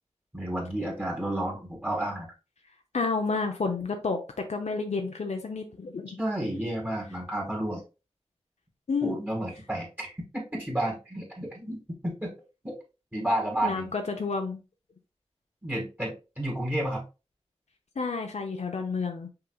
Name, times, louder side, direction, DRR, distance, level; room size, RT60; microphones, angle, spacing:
voice 1, 0.3-2.3 6.2-7.8 9.0-12.3 12.6-12.8 13.1-13.9 15.6-17.0, right 1 dB, 15° right, -2 dB, 1.9 m, -31 dB
voice 2, 2.9-4.2 4.5-6.2 8.9-9.2 13.6-14.6 18.0-19.3, left 4 dB, 75° left, 4 dB, 0.7 m, -30 dB
5.7 x 3.8 x 2.3 m, 0.30 s
wide cardioid pair, 60°, 12 cm